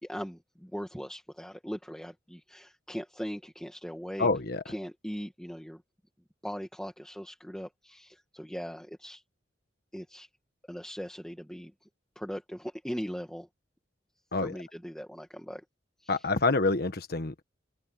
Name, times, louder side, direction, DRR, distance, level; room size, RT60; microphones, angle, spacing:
voice 1, 0.0-4.3 4.7-5.8 6.4-9.2 9.9-10.3 10.7-11.7 12.2-13.5 14.4-15.6 16.0-16.2, equal, 5° left, 2.0 m, -39 dB
voice 2, 4.2-4.6 14.3-14.5 16.1-17.4, left 3 dB, 55° left, 1.4 m, -27 dB
open air
head